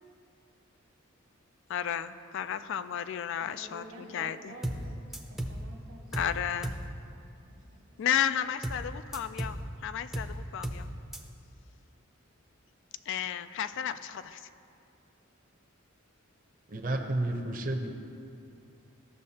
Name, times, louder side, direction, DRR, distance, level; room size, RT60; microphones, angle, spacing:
voice 1, 1.7-4.5 6.1-6.7 8.0-10.9 13.1-14.4, left 9 dB, 60° left, 13 dB, 0.3 m, -33 dB
voice 2, 3.4-5.0 5.3-8.0, right 1 dB, 70° right, 0 dB, 1.4 m, -51 dB
sound 1, 4.6-4.9 5.1-5.6 6.1-6.4 6.6-6.9 8.6-8.9 9.1-9.6 10.1-10.4 10.6-10.9 11.1-11.2, right 1 dB, ahead, 0.5 m, -34 dB
voice 3, 16.7-17.9, right 1 dB, 40° right, 3 dB, 0.7 m, -31 dB
15.0 x 6.4 x 2.8 m, 2.5 s
head